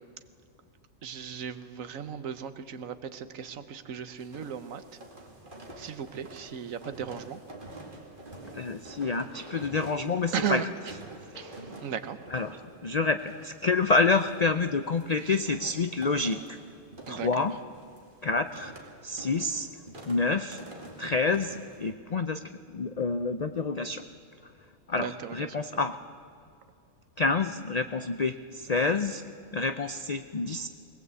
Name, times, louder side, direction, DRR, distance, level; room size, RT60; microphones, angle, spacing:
voice 1, 1.0-4.8 5.8-7.4 10.3-10.6 11.3-11.6 11.8-12.2 17.1-17.3 25.0-25.3, right 8 dB, 70° right, 10 dB, 1.4 m, -35 dB
sound 1, 4.2-21.9, right 2 dB, 35° right, 2.6 m, -48 dB
sound 2, 7.2-7.6 8.4-9.0 9.3-11.0 11.3-12.1, left 2 dB, 30° left, 6.8 m, -50 dB
voice 2, 8.5-10.7 12.3-16.6 17.1-17.6 18.2-18.7 19.0-19.7 20.1-20.6 21.0-22.4 22.7-24.1 24.9-26.0 27.2-29.2 29.5-30.7, left 3 dB, 50° left, 9 dB, 0.4 m, -28 dB
21.0 x 19.5 x 8.2 m, 2.4 s
omnidirectional pair, 1.5 m